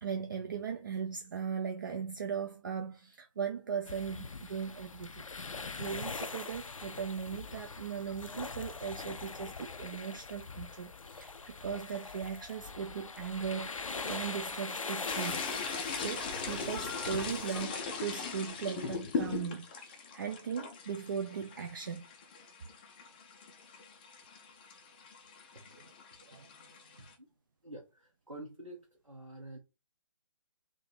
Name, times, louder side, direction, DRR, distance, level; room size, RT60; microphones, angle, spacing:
voice 1, 0.0-5.2 5.5-15.5 15.9-22.0 26.3-26.5, right 7 dB, 40° right, 0.5 m, -38 dB
sound 1, 3.9-17.7, left 4 dB, 75° left, 0.5 m, -42 dB
sound 2, 15.1-27.1, left 5 dB, 15° left, 0.4 m, -40 dB
voice 2, 26.3-27.3 27.6-29.6, right 1 dB, 85° right, 1.2 m, -49 dB
3.8 x 2.7 x 4.4 m
figure-of-eight pair, 140°, 17 cm